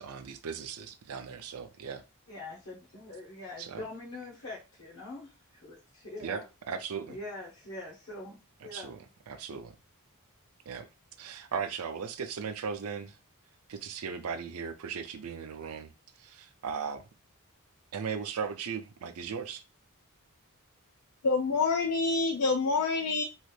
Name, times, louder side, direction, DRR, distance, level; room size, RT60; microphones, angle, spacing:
voice 1, 0.0-2.0 3.6-3.8 6.2-6.4 6.7-7.2 8.6-9.0 9.3-9.8 10.7-10.9 11.2-13.2 13.7-15.9 16.2-17.0 17.9-19.6, right 6 dB, 70° right, 0.5 m, -37 dB
voice 2, 2.3-6.4 7.1-8.9 9.3-9.4, left 2 dB, 60° left, 0.9 m, -44 dB
voice 3, 21.2-23.2, left 4 dB, 85° left, 0.5 m, -27 dB
3.1 x 2.4 x 3.2 m
head